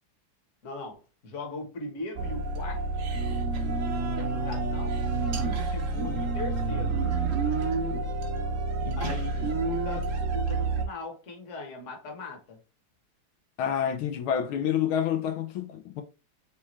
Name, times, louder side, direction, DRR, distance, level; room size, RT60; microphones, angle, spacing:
voice 1, 0.6-2.8 4.0-4.9 5.4-6.9 9.0-12.6, left 3 dB, 40° left, 1.3 m, -39 dB
sound 1, 2.2-10.9, right 3 dB, 50° right, 1.1 m, -29 dB
voice 2, 13.6-16.0, left 9 dB, 85° left, 1.5 m, -28 dB
4.3 x 3.4 x 3.1 m
omnidirectional pair, 2.3 m